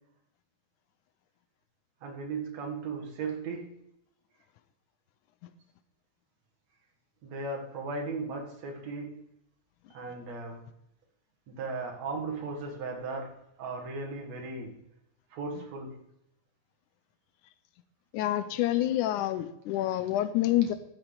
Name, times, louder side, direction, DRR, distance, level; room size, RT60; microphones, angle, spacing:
voice 1, 2.0-3.7 7.2-9.2 9.9-10.7 11.5-14.8 15.3-16.0, right 3 dB, 60° right, 1 dB, 2.8 m, -37 dB
voice 2, 18.1-20.7, left 13 dB, 80° left, 13 dB, 2.0 m, -27 dB
13.0 x 7.2 x 3.9 m, 0.81 s
omnidirectional pair, 3.7 m